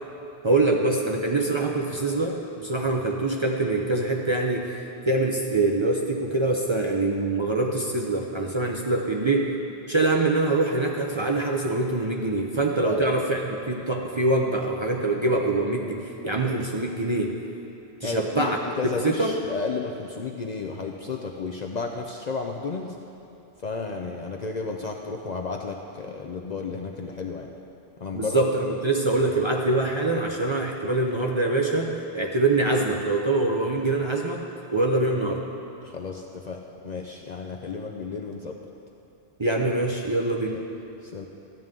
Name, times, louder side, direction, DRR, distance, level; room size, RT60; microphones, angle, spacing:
voice 1, 0.4-9.5 9.9-17.3 18.0-18.6 19.0-19.4 28.1-34.4 34.7-35.4 39.4-40.6, right 2 dB, 30° right, 0 dB, 0.6 m, -24 dB
voice 2, 12.8-13.1 18.0-22.9 23.6-27.5 28.0-28.4 35.8-36.6 36.8-38.6 40.5-40.6 41.0-41.3, left 4 dB, 50° left, 1 dB, 0.5 m, -32 dB
13.5 x 9.1 x 3.7 m, 2.9 s
omnidirectional pair, 1.2 m